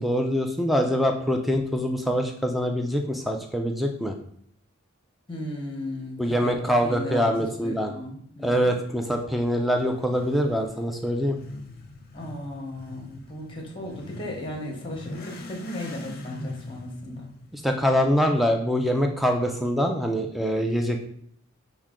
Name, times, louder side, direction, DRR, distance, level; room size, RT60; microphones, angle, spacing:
voice 1, 0.0-4.1 6.2-7.9 8.4-11.4 17.5-21.1, equal, ahead, 3 dB, 0.4 m, -24 dB
voice 2, 5.3-8.7 12.1-17.3, left 1 dB, 25° left, 0 dB, 0.9 m, -36 dB
Motorcycle / Accelerating revving vroom, 9.7-18.5, left 2 dB, 50° left, 0.6 m, -43 dB
6.0 x 2.2 x 3.6 m, 0.64 s
head